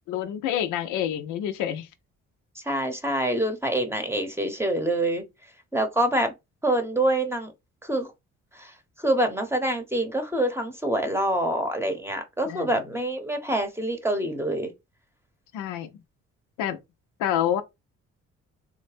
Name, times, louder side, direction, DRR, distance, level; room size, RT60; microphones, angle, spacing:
voice 1, 0.1-1.9 12.5-12.8 15.5-15.9 16.6-16.8 17.2-17.6, left 10 dB, 85° left, 0.5 m, -27 dB
voice 2, 2.6-5.2 5.7-6.3 6.6-7.5 7.8-8.1 8.5-14.7, right 1 dB, 10° right, 0.8 m, -26 dB
3.5 x 2.1 x 3.3 m
cardioid pair, 90°, 30 cm